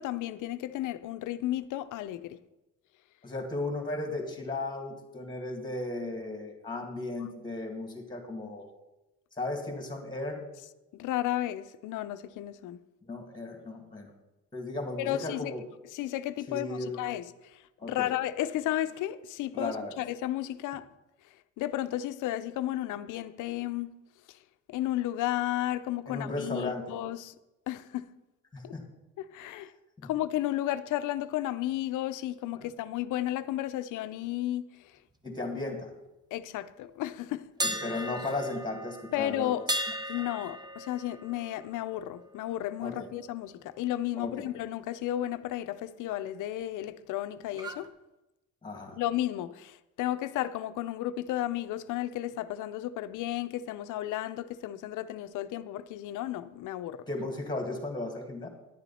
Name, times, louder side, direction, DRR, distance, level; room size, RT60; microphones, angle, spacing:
voice 1, 0.0-2.4 7.2-7.3 10.9-12.8 15.0-15.5 15.9-20.9 21.6-23.9 24.3-24.4 24.7-27.3 27.7-28.1 28.6-28.7 29.2-29.7 30.0-35.0 36.3-37.4 39.1-39.7 40.1-47.9 48.9-57.1, left 13 dB, 85° left, 0.5 m, -33 dB
voice 2, 3.2-8.7 9.4-10.5 13.0-14.1 14.5-15.6 16.5-17.0 17.8-18.1 19.5-19.9 26.1-26.8 28.5-28.8 30.0-30.1 32.6-32.7 35.2-35.9 37.6-39.5 42.8-43.1 44.2-44.5 48.6-49.0 57.1-58.5, left 2 dB, 15° left, 2.1 m, -35 dB
sound 1, 37.6-43.5 43.8-44.0 47.5-47.9, right 1 dB, 15° right, 0.9 m, -37 dB
10.5 x 8.2 x 4.2 m
cardioid pair, 90°, 30 cm